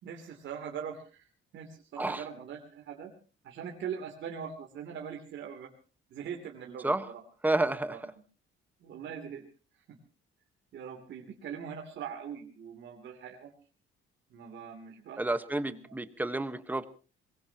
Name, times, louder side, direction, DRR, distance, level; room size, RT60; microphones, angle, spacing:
voice 1, 0.0-1.3 1.5-3.1 3.4-5.7 6.1-7.2 7.9-8.0 8.8-9.4 9.9-10.0 10.7-13.5 14.3-15.2 15.6-15.9, right 7 dB, 60° right, 2 dB, 2.9 m, -41 dB
voice 2, 7.4-8.0 15.2-16.8, right 2 dB, 10° right, 11 dB, 1.2 m, -30 dB
23.5 x 21.5 x 2.9 m, 0.36 s
cardioid pair, 160°, 21 cm